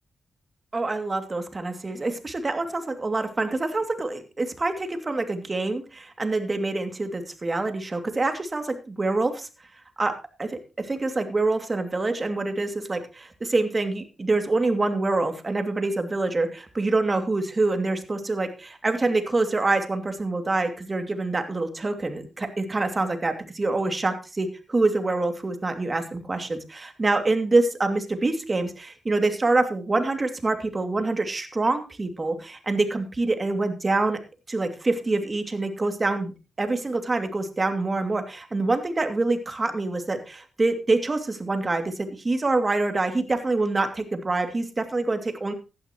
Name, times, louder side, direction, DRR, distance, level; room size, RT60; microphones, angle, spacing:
voice 1, 0.7-9.5 10.0-10.1 10.4-34.2 34.5-36.3 36.6-45.5, right 2 dB, 30° right, 7 dB, 2.6 m, -26 dB
16.0 x 11.5 x 3.1 m, 0.30 s
cardioid pair, 75°, 0 cm